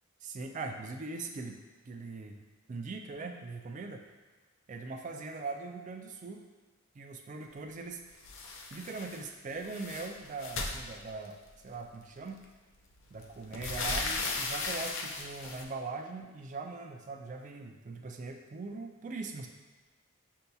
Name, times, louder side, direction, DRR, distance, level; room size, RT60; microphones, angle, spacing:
voice 1, 0.2-1.6 1.9-2.4 2.7-4.0 4.7-6.4 6.9-8.0 8.7-12.4 13.1-19.5, right 3 dB, 35° right, 4 dB, 0.3 m, -41 dB
sound 1, 8.2-9.2 9.5-11.5 12.4-12.5 12.9-15.6, left 3 dB, 60° left, 0.5 m, -36 dB
6.4 x 2.8 x 2.3 m, 1.3 s
head